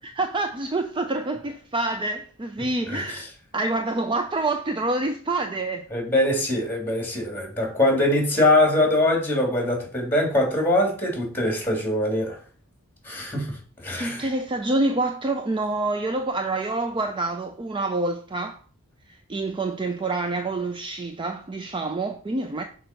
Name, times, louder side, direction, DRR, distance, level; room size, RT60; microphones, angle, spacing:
voice 1, 0.0-3.3 3.5-5.9 14.0-18.6 19.3-22.6, right 2 dB, 25° right, 0.4 m, -27 dB
voice 2, 2.9-3.2 5.9-12.4 13.0-13.5 13.8-14.2, left 1 dB, 10° left, 2.8 m, -23 dB
6.1 x 4.5 x 5.2 m
head